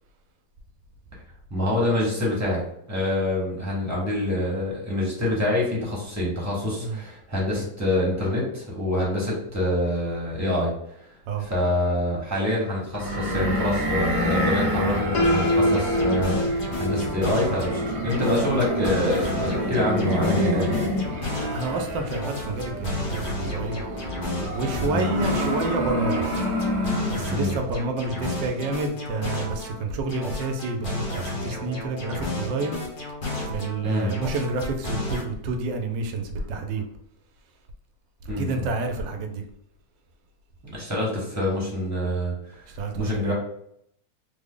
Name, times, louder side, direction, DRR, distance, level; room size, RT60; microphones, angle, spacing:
voice 1, 1.5-2.6 2.9-10.8 11.4-20.8 24.8-25.1 27.3-27.6 33.8-34.1 38.3-38.7 40.7-42.6 43.0-43.3, left 1 dB, 15° right, -5 dB, 0.8 m, -26 dB
sound 1, 12.9-27.5, equal, 60° right, 0.7 m, -28 dB
Piano, 15.1-21.0, equal, 75° left, 1.2 m, -28 dB
sound 2, 15.2-17.8 18.1-21.8 22.1-25.8 26.1-29.8 30.1-33.8 34.1-35.2, left 1 dB, 45° left, 0.6 m, -33 dB
voice 2, 21.5-23.8 24.5-26.3 27.1-32.8 33.5-36.8 38.2-39.4 42.7-43.3, right 3 dB, 90° right, 5 dB, 1.3 m, -29 dB
3.4 x 2.0 x 3.6 m, 0.71 s
omnidirectional pair, 1.9 m